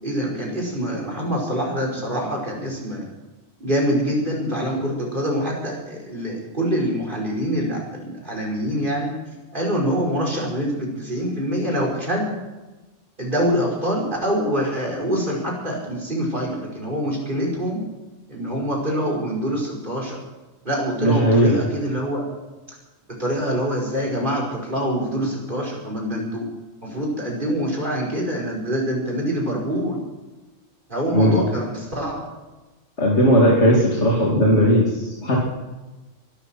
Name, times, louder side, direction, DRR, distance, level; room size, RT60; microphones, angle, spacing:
voice 1, 0.0-3.1 3.6-9.1 9.5-12.4 13.2-17.8 18.3-20.2 20.7-22.3 23.2-26.4 26.8-30.0 30.9-32.2, equal, 40° right, -1 dB, 5.4 m, -25 dB
voice 2, 21.0-21.6 31.1-31.4 33.0-35.4, equal, 60° left, -3 dB, 3.2 m, -17 dB
23.5 x 12.5 x 4.5 m, 1.1 s
omnidirectional pair, 1.4 m